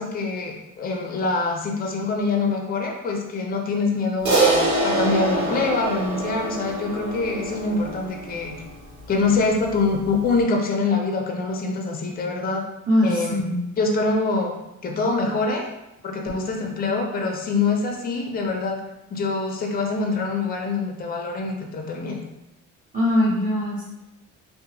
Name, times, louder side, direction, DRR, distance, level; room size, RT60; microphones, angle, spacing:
voice 1, 0.0-8.5 9.1-12.6 13.0-13.4 13.8-14.5 14.8-15.7 16.0-18.8 19.1-22.2, left 3 dB, 30° left, 2 dB, 0.5 m, -25 dB
Crash cymbal, 4.3-8.8, right 2 dB, 70° right, 0.8 m, -24 dB
voice 2, 12.9-13.7 22.9-23.8, left 1 dB, 25° right, -7 dB, 1.3 m, -21 dB
2.8 x 2.1 x 2.7 m, 0.93 s
cardioid pair, 90°, 30 cm